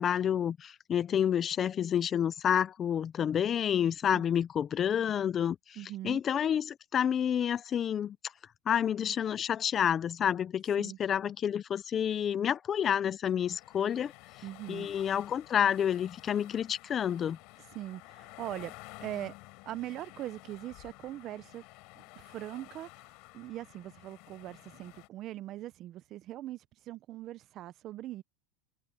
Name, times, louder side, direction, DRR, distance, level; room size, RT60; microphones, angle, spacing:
voice 1, 0.0-5.8 6.0-8.2 8.7-14.1 14.7-17.4, left 9 dB, 25° left, 0.5 m, -29 dB
voice 2, 5.8-6.2 10.8-11.0 14.4-14.9 17.7-18.7 19.0-19.3 19.7-21.6 22.0-28.2, right 14 dB, 35° right, 0.5 m, -41 dB
sound 1, 13.4-25.1, left 26 dB, 50° left, 4.0 m, -52 dB
supercardioid pair, 155°, 0 cm